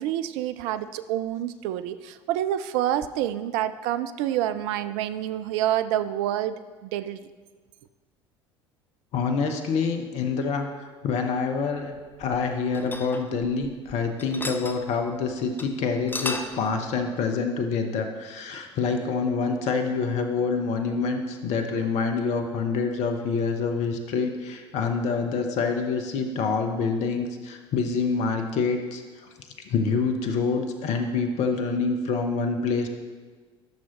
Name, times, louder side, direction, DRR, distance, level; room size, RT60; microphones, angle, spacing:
voice 1, 0.0-6.6 6.8-7.2, right 12 dB, 60° right, 12 dB, 0.4 m, -27 dB
voice 2, 9.1-10.7 11.0-29.0 29.7-32.9, left 5 dB, 50° left, 5 dB, 0.8 m, -26 dB
sound 1, 11.9-13.9 14.2-14.8 15.2-15.3 15.6-15.7 15.9-16.6, left 2 dB, 15° left, 0.7 m, -34 dB
13.5 x 6.2 x 3.0 m, 1.4 s
figure-of-eight pair, 60°, 15 cm